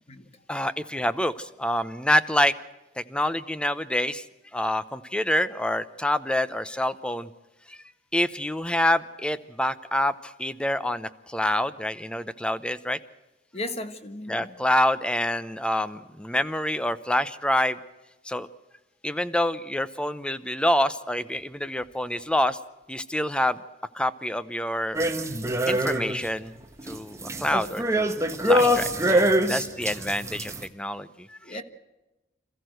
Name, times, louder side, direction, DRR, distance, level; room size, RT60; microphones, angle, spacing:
voice 1, 0.5-2.5 3.0-4.2 4.5-7.3 7.7-7.8 8.1-13.0 14.3-17.8 18.3-18.5 19.0-22.6 22.9-23.6 23.9-25.0 25.7-26.5 26.9-28.1 28.4-31.6, left 1 dB, 5° left, 0.8 m, -27 dB
voice 2, 13.5-14.5 31.4-31.6, left 1 dB, 35° left, 1.5 m, -35 dB
sound 1, 24.9-26.3 26.6-30.6, equal, 15° right, 1.4 m, -24 dB
27.5 x 14.5 x 7.9 m
head